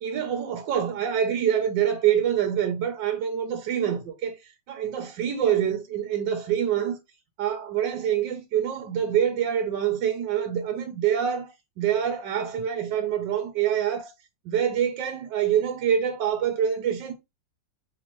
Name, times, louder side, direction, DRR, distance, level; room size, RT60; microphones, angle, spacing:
voice 1, 0.0-4.4 4.7-7.0 7.4-14.1 14.4-17.1, right 9 dB, 85° right, 1.4 m, -25 dB
3.3 x 3.0 x 4.2 m
omnidirectional pair, 1.9 m